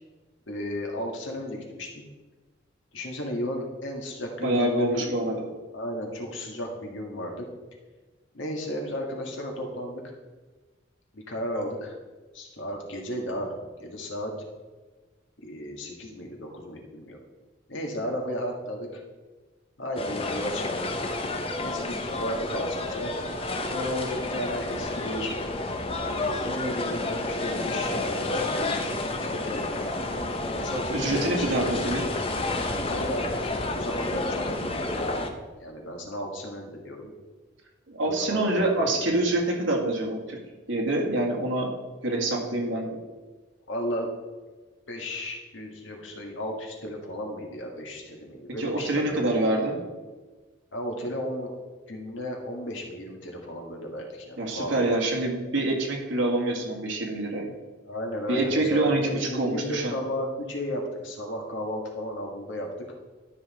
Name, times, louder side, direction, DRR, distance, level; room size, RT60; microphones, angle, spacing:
voice 1, 0.5-2.0 2.9-5.2 5.7-7.5 8.3-10.0 11.1-11.9 12.3-13.5 13.8-14.3 15.4-17.2 17.7-19.0 19.8-20.9 21.6-23.1 23.6-25.3 26.0-28.9 29.3-29.9 30.5-31.6 32.9-33.2 33.7-35.2 35.6-37.1 38.1-39.2 43.7-44.1 44.9-49.7 50.7-51.5 51.9-55.0 57.9-62.7, equal, 75° left, 1 dB, 1.8 m, -34 dB
voice 2, 4.4-5.4 30.9-32.1 37.9-40.4 40.7-41.7 42.0-43.0 48.6-49.8 54.4-57.5 58.3-59.9, right 2 dB, 75° right, 0 dB, 2.1 m, -26 dB
sound 1, 20.0-35.3, left 2 dB, 30° left, 0.7 m, -30 dB
12.0 x 5.7 x 4.3 m, 1.3 s
head